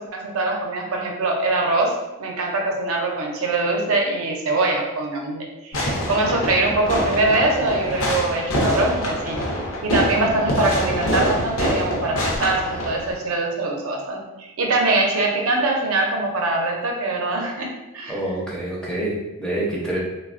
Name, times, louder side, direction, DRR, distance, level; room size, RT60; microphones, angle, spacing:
voice 1, 0.0-1.9 2.2-9.4 9.8-17.7 17.9-18.2, right 2 dB, 75° right, 0 dB, 0.6 m, -23 dB
Fireworks, 5.7-13.1, equal, 70° left, 0.6 m, -25 dB
voice 2, 18.1-20.0, right 1 dB, 5° left, -6 dB, 0.5 m, -26 dB
3.2 x 2.1 x 2.4 m, 0.99 s
head